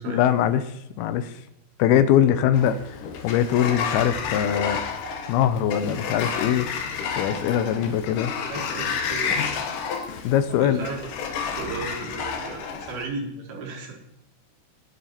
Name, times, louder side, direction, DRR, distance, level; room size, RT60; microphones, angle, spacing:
voice 1, 0.1-1.4 1.8-4.8 5.3-6.7 7.2-8.3 10.2-10.9, left 10 dB, 85° left, 12 dB, 2.6 m, -22 dB
Sliding door, 2.5-13.1, left 6 dB, 65° left, 2.5 m, -30 dB
voice 2, 8.4-9.3 10.6-11.1 11.6-13.9, right 4 dB, 80° right, 0 dB, 4.2 m, -35 dB
11.0 x 9.7 x 4.3 m, 0.82 s
omnidirectional pair, 4.4 m